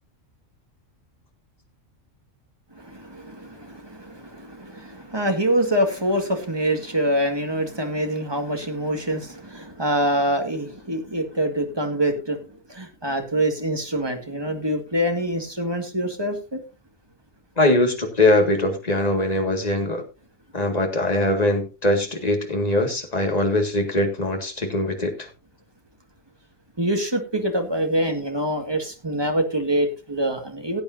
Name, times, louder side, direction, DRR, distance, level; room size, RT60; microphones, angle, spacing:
voice 1, 2.8-12.4 12.7-16.6 26.8-30.8, right 1 dB, 20° right, 4 dB, 1.8 m, -25 dB
voice 2, 17.6-20.0 20.5-25.3, left 1 dB, 30° left, 4 dB, 2.0 m, -22 dB
18.0 x 8.7 x 2.6 m, 0.30 s
omnidirectional pair, 1.3 m